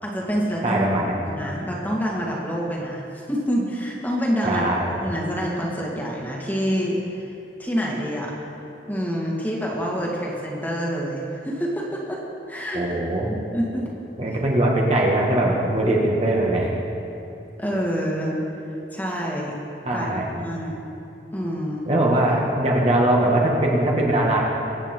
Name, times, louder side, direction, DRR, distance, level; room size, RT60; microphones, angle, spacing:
voice 1, 0.0-0.8 1.3-7.3 7.6-8.3 8.9-12.2 12.5-12.8 13.2-13.8 17.6-18.3 18.9-19.5 19.9-20.7 21.3-21.9, equal, 10° left, -3 dB, 2.1 m, -27 dB
voice 2, 0.6-1.2 4.4-4.9 12.7-13.3 14.2-16.7 19.8-20.3 21.9-24.4, right 1 dB, 35° right, -2 dB, 2.0 m, -21 dB
23.5 x 8.9 x 4.6 m, 2.9 s
head